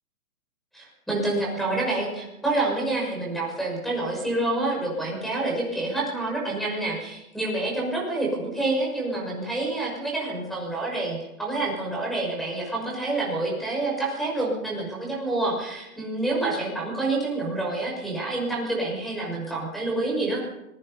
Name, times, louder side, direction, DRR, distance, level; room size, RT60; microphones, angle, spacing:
voice 1, 0.7-20.4, right 2 dB, ahead, -2 dB, 6.1 m, -28 dB
25.0 x 22.0 x 5.5 m, 0.92 s
hypercardioid pair, 170°, 44 cm